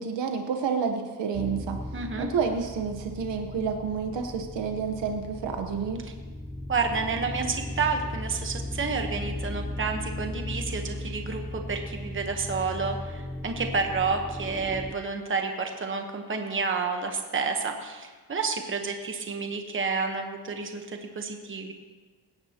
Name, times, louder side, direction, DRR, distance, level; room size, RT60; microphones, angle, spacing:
voice 1, 0.0-1.8 2.2-6.0, right 6 dB, 90° right, 4 dB, 1.2 m, -29 dB
sound 1, 1.3-14.9, left 1 dB, ahead, 0.4 m, -37 dB
voice 2, 1.9-2.3 6.7-21.7, right 4 dB, 30° right, 4 dB, 1.1 m, -30 dB
19.5 x 17.0 x 2.9 m, 1.4 s
wide cardioid pair, 155°, 42 cm